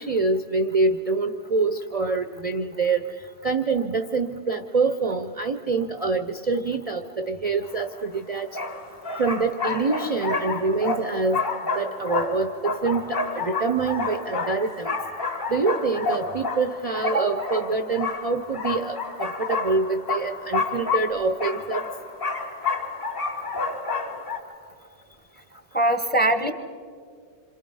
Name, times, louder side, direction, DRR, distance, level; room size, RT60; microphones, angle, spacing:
voice 1, 0.0-3.0 3.4-8.5 9.1-11.4 11.8-14.9 15.5-21.8, right 3 dB, 35° right, 7 dB, 0.7 m, -25 dB
sound 1, 7.8-7.9 8.5-24.4, left 4 dB, 40° left, 3.1 m, -29 dB
voice 2, 25.7-26.5, right 1 dB, 10° left, 7 dB, 1.1 m, -21 dB
27.5 x 26.5 x 5.5 m, 2.2 s
omnidirectional pair, 1.2 m